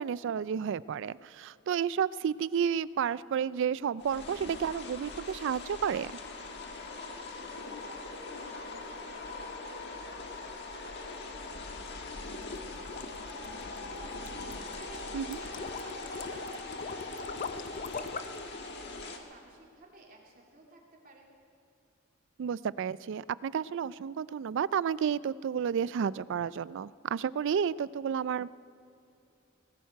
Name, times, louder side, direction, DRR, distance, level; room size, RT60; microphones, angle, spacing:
voice 1, 0.0-6.1 15.1-15.4 22.4-28.5, right 7 dB, 60° right, 20 dB, 0.3 m, -31 dB
sound 1, 4.0-19.2, left 3 dB, 55° left, 1.5 m, -41 dB
voice 2, 6.9-14.1 14.3-21.3, right 1 dB, 45° right, -2 dB, 2.9 m, -56 dB
sound 2, 12.4-18.5, left 5 dB, 40° left, 0.6 m, -41 dB
19.0 x 15.5 x 4.6 m, 2.6 s
head